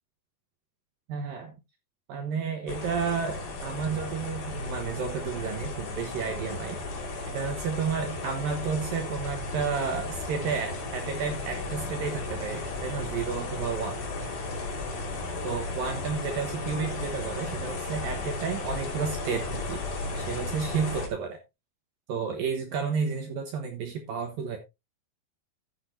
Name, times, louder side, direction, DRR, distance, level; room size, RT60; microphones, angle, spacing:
voice 1, 1.1-1.5 2.1-14.0 15.4-21.4 22.1-24.6, right 6 dB, 65° right, 4 dB, 2.5 m, -32 dB
sound 1, 2.7-21.1, left 3 dB, 75° left, 5.2 m, -35 dB
14.0 x 8.1 x 2.7 m, 0.24 s
omnidirectional pair, 5.1 m